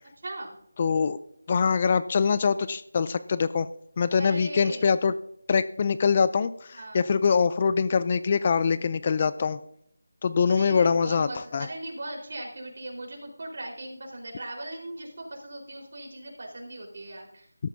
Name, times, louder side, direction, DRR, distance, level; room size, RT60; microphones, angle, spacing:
voice 1, 0.2-0.5 4.2-4.9 6.7-7.0 10.5-17.5, right 1 dB, 50° right, 0 dB, 4.2 m, -38 dB
voice 2, 0.8-1.2 1.5-3.7 4.0-5.1 5.5-9.6 10.2-11.7, left 5 dB, 30° left, 14 dB, 0.4 m, -24 dB
17.0 x 13.0 x 2.7 m, 0.72 s
figure-of-eight pair, 170°, 0 cm